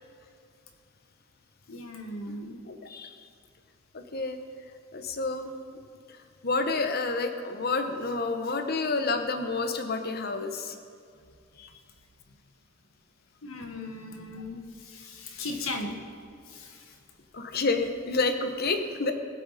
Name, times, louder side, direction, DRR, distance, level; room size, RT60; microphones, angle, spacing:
voice 1, 1.7-2.6 13.4-16.0 16.5-16.9 17.5-17.6, left 2 dB, 80° left, 3 dB, 1.6 m, -38 dB
voice 2, 2.7-3.2 3.9-4.4 4.9-5.5 6.4-10.8 11.6-11.7 17.3-19.1, left 3 dB, 45° left, 7 dB, 1.0 m, -29 dB
20.0 x 8.4 x 4.2 m, 2.4 s
head